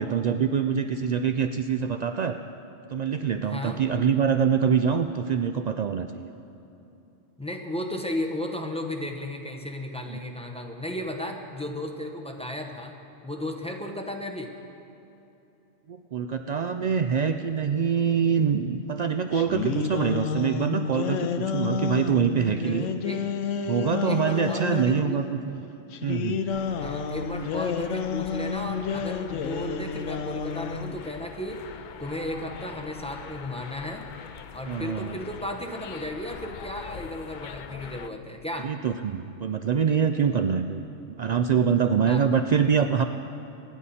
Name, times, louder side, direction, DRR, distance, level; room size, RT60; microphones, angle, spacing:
voice 1, 0.0-2.4 2.9-6.3 10.1-10.2 15.9-22.9 23.7-25.6 26.0-26.4 34.7-35.2 38.6-40.8 41.2-43.0, right 7 dB, 75° right, 7 dB, 0.3 m, -25 dB
voice 2, 3.4-3.8 7.4-13.0 13.2-14.5 22.7-23.2 24.0-25.2 26.8-31.6 32.0-34.1 34.5-38.7 42.1-42.2, left 1 dB, 5° left, 2 dB, 0.9 m, -34 dB
sound 1, 19.3-25.1 25.9-31.0, left 6 dB, 90° left, 1.0 m, -30 dB
sound 2, 26.5-38.1, left 7 dB, 60° left, 0.5 m, -43 dB
25.0 x 10.0 x 4.2 m, 2.9 s
omnidirectional pair, 1.3 m